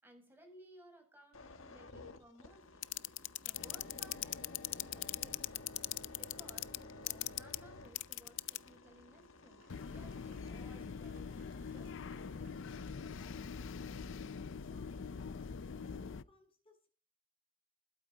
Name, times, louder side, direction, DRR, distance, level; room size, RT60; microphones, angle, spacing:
voice 1, 0.0-2.8 3.4-4.5 4.8-5.4 6.1-13.6 14.8-15.0, right 1 dB, 10° right, 2 dB, 6.6 m, -61 dB
sound 1, 1.3-12.3 12.8-13.0, left 3 dB, 80° left, 1.7 m, -54 dB
sound 2, 2.8-8.7 9.7-16.2, left 9 dB, 65° left, 0.5 m, -42 dB
sound 3, 9.6-14.7, right 5 dB, 50° right, 2.0 m, -69 dB
voice 2, 14.3-15.5 15.8-16.9, left 1 dB, 30° left, 0 dB, 7.7 m, -66 dB
20.5 x 9.2 x 3.9 m, 0.40 s
head